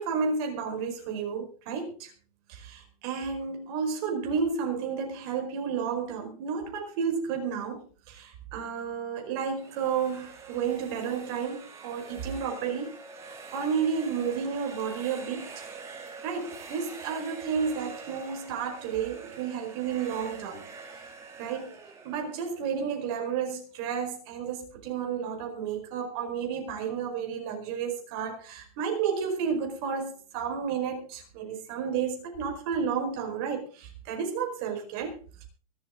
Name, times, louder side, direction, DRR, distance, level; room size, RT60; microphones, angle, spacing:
voice 1, 0.0-2.1 2.5-12.9 13.5-15.5 16.2-20.6 21.4-21.7 22.0-35.4, right 6 dB, 40° right, 3 dB, 4.9 m, -31 dB
sound 1, 9.4-23.3, right 4 dB, 15° right, 2.5 m, -45 dB
24.0 x 8.4 x 3.9 m, 0.38 s
supercardioid pair, 170°, 19 cm